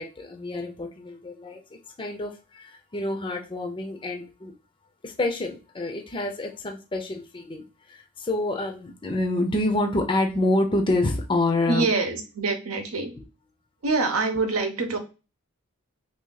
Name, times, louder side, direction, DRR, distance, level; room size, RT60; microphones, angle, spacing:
voice 1, 0.0-4.5 5.0-11.9, left 2 dB, 25° left, 3 dB, 0.5 m, -27 dB
voice 2, 11.7-13.1 13.8-15.0, right 3 dB, 85° right, 5 dB, 0.8 m, -25 dB
2.7 x 2.7 x 3.8 m, 0.31 s
head